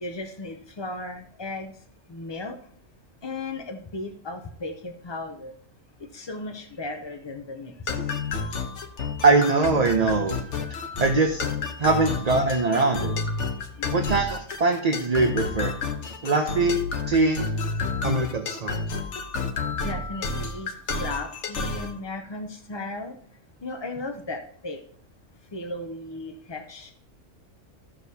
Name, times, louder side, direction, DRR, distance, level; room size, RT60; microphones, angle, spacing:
voice 1, 0.0-1.8 2.1-2.6 3.2-5.5 6.0-8.1 10.7-10.8 13.7-14.1 19.8-20.7 21.0-23.2 23.6-24.8 25.5-26.9, left 2 dB, 40° left, 5 dB, 0.4 m, -36 dB
sound 1, 7.9-21.9, left 4 dB, 65° left, 1.2 m, -30 dB
voice 2, 9.2-10.4 11.0-11.4 11.8-13.1 13.9-15.7 16.2-16.8 17.1-17.5 18.0-18.8, right 3 dB, 40° right, 3 dB, 0.7 m, -22 dB
15.5 x 6.4 x 2.8 m, 0.62 s
omnidirectional pair, 1.4 m